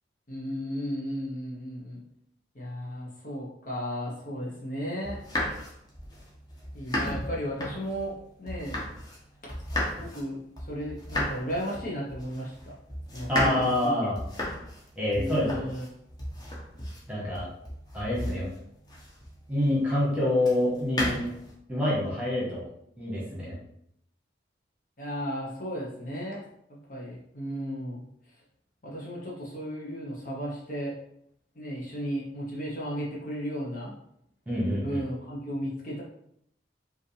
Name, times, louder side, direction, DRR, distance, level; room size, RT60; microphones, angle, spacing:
voice 1, 0.3-2.0 2.5-5.2 6.7-8.1 8.4-8.8 10.0-12.7 13.1-13.9 15.1-15.8 25.0-26.4 26.9-28.0 28.8-30.9 31.5-33.9 34.8-36.0, equal, 45° left, -4 dB, 1.0 m, -34 dB
sound 1, 5.0-9.2 9.5-19.4 20.4-21.5, left 1 dB, 20° left, 0.9 m, -34 dB
voice 2, 13.3-14.2 15.0-15.6 17.1-17.5 17.9-18.5 19.5-21.3 21.7-22.7 23.0-23.6 34.5-35.0, left 1 dB, 5° right, -6 dB, 1.3 m, -27 dB
4.9 x 2.6 x 3.3 m, 0.73 s
head